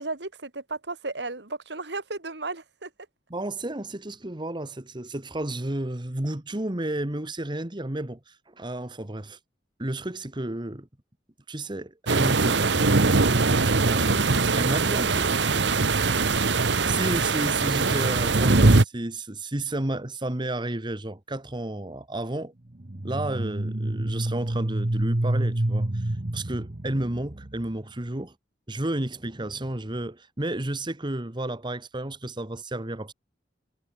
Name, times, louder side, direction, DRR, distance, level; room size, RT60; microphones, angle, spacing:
voice 1, 0.0-2.9, right 3 dB, 75° right, 2.4 m, -35 dB
voice 2, 3.3-9.4 9.8-10.9 11.5-13.0 13.6-14.1 14.5-16.6 16.8-22.5 23.0-28.3 28.7-33.1, right 1 dB, 25° right, 1.5 m, -32 dB
sound 1, 12.1-18.8, right 3 dB, 90° right, 1.2 m, -21 dB
sound 2, 12.6-17.6, equal, 50° left, 7.0 m, -44 dB
sound 3, 22.8-27.6, right 1 dB, 45° right, 1.2 m, -28 dB
head